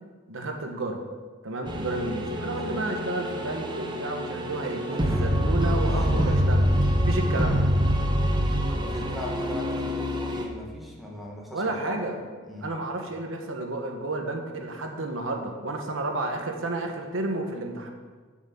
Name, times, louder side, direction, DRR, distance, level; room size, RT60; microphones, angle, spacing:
voice 1, 0.3-1.0 1.4-6.7 7.0-7.6 11.5-12.2 12.6-17.9, right 2 dB, 85° right, 3 dB, 1.1 m, -31 dB
sound 1, 1.7-10.4, equal, 25° right, 0.9 m, -25 dB
voice 2, 4.9-5.3 5.8-6.4 8.6-12.1 12.4-12.7 17.5-17.8, left 1 dB, ahead, -3 dB, 1.6 m, -39 dB
7.5 x 6.3 x 7.4 m, 1.5 s
head